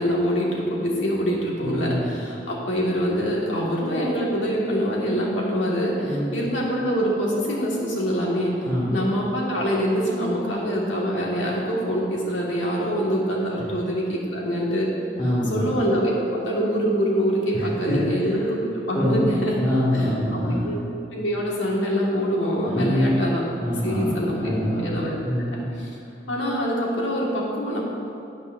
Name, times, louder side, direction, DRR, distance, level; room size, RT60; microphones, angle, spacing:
voice 1, 0.0-8.5 8.9-14.9 15.5-19.5 19.9-20.1 20.6-20.8 21.1-23.4 23.8-24.5 24.8-25.1 25.8-25.9 26.3-27.8, equal, 90° left, -3 dB, 1.9 m, -24 dB
voice 2, 1.5-2.2 6.0-6.5 8.6-9.1 15.2-15.7 17.5-18.3 18.9-19.3 19.5-20.8 22.7-23.1 23.6-25.7, equal, 35° left, -13 dB, 2.0 m, -25 dB
12.0 x 8.8 x 2.6 m, 2.6 s
head